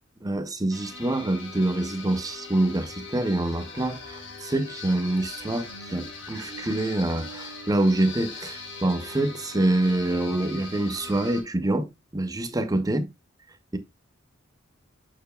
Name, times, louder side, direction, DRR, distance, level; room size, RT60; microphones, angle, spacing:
voice 1, 0.2-13.1, right 1 dB, 20° right, 0.7 m, -26 dB
sound 1, 0.7-11.4, left 3 dB, 65° left, 2.3 m, -40 dB
6.8 x 6.2 x 2.2 m
head